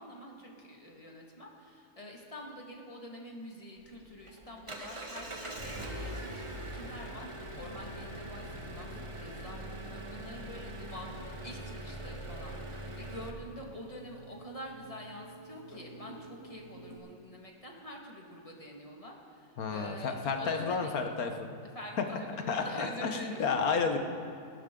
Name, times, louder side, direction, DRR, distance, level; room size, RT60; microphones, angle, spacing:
voice 1, 0.0-20.9 21.7-23.5, equal, 20° left, -1 dB, 1.8 m, -47 dB
Engine, 3.8-13.3, right 1 dB, 25° right, 1.0 m, -42 dB
sound 1, 5.3-17.0, right 2 dB, 50° left, 2.5 m, -51 dB
voice 2, 19.6-21.5 22.5-24.0, left 5 dB, 70° left, 5 dB, 1.5 m, -31 dB
22.0 x 11.5 x 3.8 m, 2.5 s
omnidirectional pair, 1.7 m